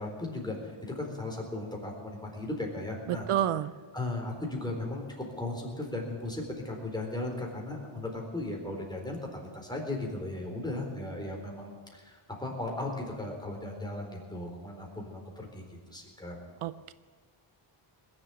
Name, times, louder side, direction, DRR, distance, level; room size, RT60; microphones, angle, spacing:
voice 1, 0.0-3.3 3.9-16.4, left 2 dB, 10° left, 0 dB, 4.1 m, -37 dB
voice 2, 3.1-3.7 16.6-16.9, right 11 dB, 90° right, 15 dB, 0.7 m, -29 dB
20.5 x 7.6 x 9.2 m, 1.4 s
wide cardioid pair, 105°, 49 cm